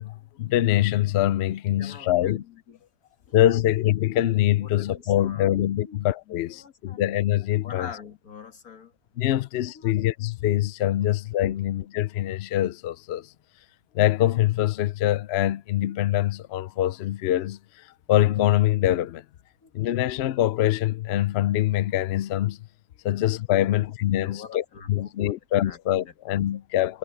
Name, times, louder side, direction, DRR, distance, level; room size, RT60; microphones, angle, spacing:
voice 1, 0.0-2.4 3.3-7.9 9.2-13.3 13.9-19.2 19.7-22.6 23.0-27.0, left 13 dB, 65° left, 0.7 m, -24 dB
voice 2, 1.8-2.8 3.3-3.6 4.6-5.5 5.8-6.0 6.6-7.0 7.6-8.9 9.7-9.9 19.6-19.7 23.6-23.7 24.2-25.3 25.6-25.8, left 6 dB, 85° left, 2.3 m, -44 dB
omnidirectional pair, 1.5 m